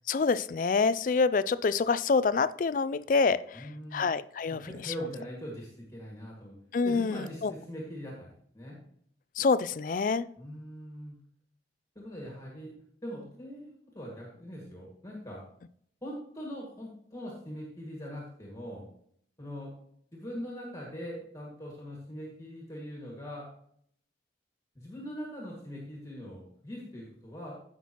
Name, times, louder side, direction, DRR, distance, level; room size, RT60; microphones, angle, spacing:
voice 1, 0.1-3.7 3.9-4.9 6.7-7.5 9.4-10.3, left 4 dB, 45° left, 16 dB, 0.3 m, -27 dB
voice 2, 3.5-4.1 4.5-6.5 6.8-8.3 8.5-8.8 10.4-11.2 12.0-12.7 13.0-15.4 16.0-18.9 19.4-19.7 20.1-23.5 24.8-27.6, equal, 15° left, -3 dB, 2.0 m, -41 dB
15.0 x 5.9 x 3.0 m, 0.66 s
head